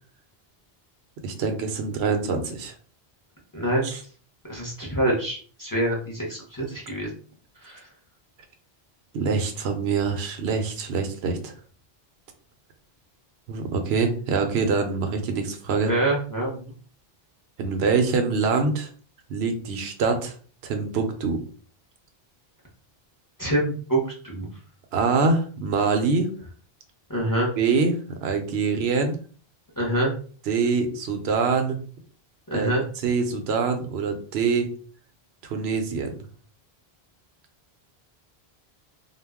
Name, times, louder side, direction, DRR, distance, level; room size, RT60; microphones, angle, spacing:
voice 1, 1.2-2.7 3.8-4.0 9.1-11.5 13.5-15.9 17.6-18.9 19.3-20.3 20.6-21.4 24.9-26.3 27.6-29.2 30.5-31.8 32.5-32.7 33.0-34.7 35.4-36.1, right 4 dB, 80° right, 6 dB, 0.8 m, -24 dB
voice 2, 3.5-3.9 4.5-7.1 7.6-7.8 15.9-16.7 23.4-24.5 27.1-27.5 29.8-30.1 32.5-32.8, right 1 dB, 25° left, -3 dB, 0.6 m, -25 dB
2.2 x 2.0 x 3.4 m, 0.42 s
omnidirectional pair, 1.0 m